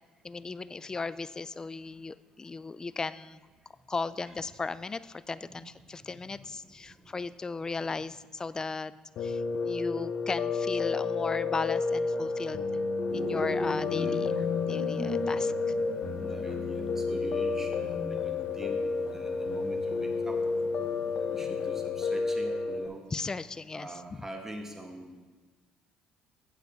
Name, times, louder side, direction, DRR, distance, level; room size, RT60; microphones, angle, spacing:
voice 1, 0.2-3.4 3.9-8.9 9.2-12.7 13.1-14.3 14.7-15.5 23.1-23.9, left 4 dB, 25° left, 16 dB, 0.3 m, -36 dB
voice 2, 5.4-7.2 13.8-14.3 16.2-18.8 19.1-20.4 20.7-20.9 21.3-23.0 23.7-25.2, right 1 dB, 15° right, 2 dB, 1.6 m, -45 dB
Piano, 9.2-22.9, left 4 dB, 60° left, 0.7 m, -31 dB
sound 1, 13.1-21.8, left 1 dB, 65° right, 2.2 m, -40 dB
8.1 x 7.8 x 4.6 m, 1.3 s
supercardioid pair, 80°, 3 cm